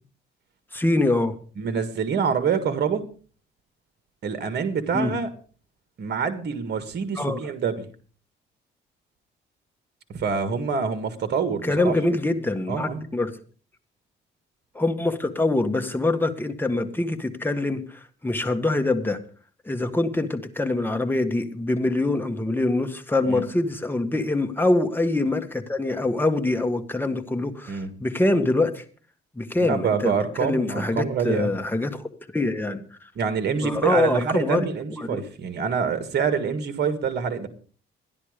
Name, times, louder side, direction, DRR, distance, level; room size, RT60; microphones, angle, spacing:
voice 1, 0.7-1.3 4.9-5.1 7.1-7.4 11.6-13.3 14.7-19.2 19.6-28.8 29.3-30.1 30.4-32.8 33.6-34.6 35.0-35.2, left 2 dB, 10° left, 6 dB, 1.6 m, -24 dB
voice 2, 1.6-3.0 4.2-5.3 6.0-7.8 10.1-12.0 12.7-13.0 23.3-23.4 27.7-27.9 29.6-31.5 33.2-37.5, right 6 dB, 55° right, 10 dB, 1.8 m, -26 dB
13.0 x 10.5 x 5.1 m, 0.41 s
cardioid pair, 90°, 20 cm